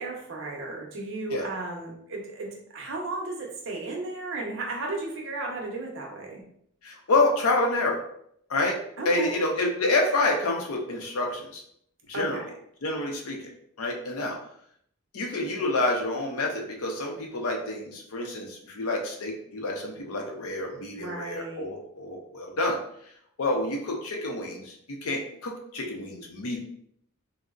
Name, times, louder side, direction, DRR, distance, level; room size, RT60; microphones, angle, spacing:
voice 1, 0.0-6.4 9.0-9.4 12.1-12.4 21.0-21.6, right 2 dB, 60° right, 0 dB, 0.6 m, -34 dB
voice 2, 6.8-8.0 8.5-8.8 9.0-11.6 12.1-12.4 12.8-13.4 13.8-14.4 15.1-22.8 23.4-26.6, left 2 dB, 80° left, 1 dB, 0.6 m, -28 dB
3.7 x 2.0 x 2.3 m, 0.69 s
head